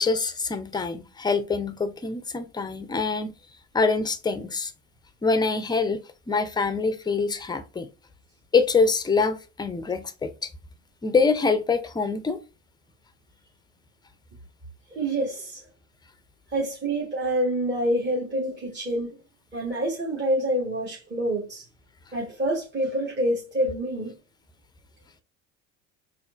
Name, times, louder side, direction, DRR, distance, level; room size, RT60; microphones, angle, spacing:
voice 1, 0.0-3.3 3.7-4.7 5.2-7.9 8.5-10.5 11.0-12.4, left 4 dB, 10° left, 0.5 m, -25 dB
voice 2, 14.9-15.6 16.5-19.2 19.5-21.6 22.1-24.1, right 1 dB, 30° right, 1.3 m, -27 dB
4.2 x 2.7 x 2.4 m
hypercardioid pair, 80°, 38 cm